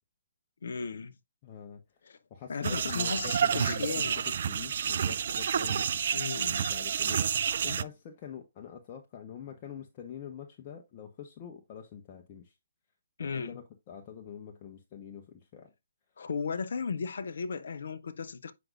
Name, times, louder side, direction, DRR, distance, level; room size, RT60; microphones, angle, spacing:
voice 1, 0.6-1.2 2.0-2.2 2.5-4.3 6.1-6.6 13.2-13.6 16.2-18.5, left 5 dB, 65° left, 0.6 m, -35 dB
voice 2, 1.4-1.8 2.3-4.0 4.4-6.1 6.4-7.3 7.6-12.5 13.2-15.7, left 8 dB, 35° left, 0.9 m, -45 dB
sound 1, 2.6-7.8, right 8 dB, 55° right, 0.3 m, -29 dB
7.7 x 5.2 x 2.4 m
figure-of-eight pair, 135°, 0 cm